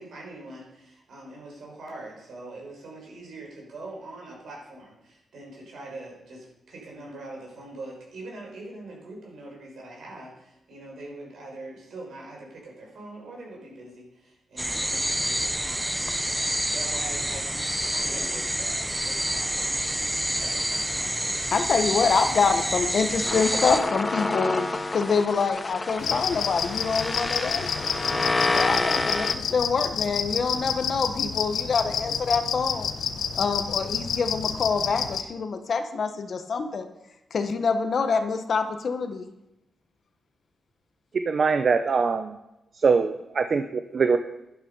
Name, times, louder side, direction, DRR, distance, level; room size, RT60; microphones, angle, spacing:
voice 1, 0.0-16.5 16.7-19.8 20.4-21.5, right 2 dB, 70° right, -1 dB, 5.9 m, -43 dB
sound 1, 14.6-23.8, right 1 dB, 5° right, 0.8 m, -28 dB
voice 2, 21.5-27.9 28.5-32.9 33.4-36.9 37.3-39.3, left 5 dB, 50° left, 7 dB, 1.1 m, -26 dB
sound 2, 23.3-29.3, left 2 dB, 20° left, 0.9 m, -28 dB
sound 3, 26.0-35.2, left 7 dB, 80° left, 1.0 m, -29 dB
voice 3, 41.1-42.4 42.7-44.2, right 5 dB, 45° right, 9 dB, 0.6 m, -23 dB
12.0 x 11.5 x 5.4 m, 0.91 s
wide cardioid pair, 155°, 0 cm